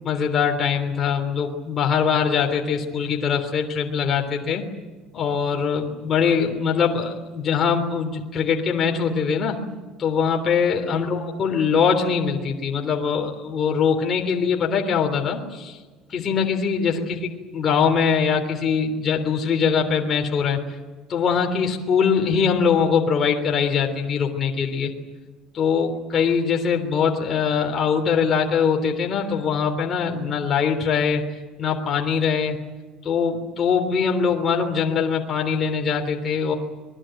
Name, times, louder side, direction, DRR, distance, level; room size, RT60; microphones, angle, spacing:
voice 1, 0.0-4.6 5.1-9.6 10.0-15.8 16.1-17.2 17.5-20.6 21.1-24.9 25.5-31.2 31.6-32.6 33.0-36.5, left 6 dB, 30° left, 2 dB, 3.4 m, -22 dB
27.5 x 21.5 x 9.0 m, 1.3 s
cardioid pair, 150°, 0 cm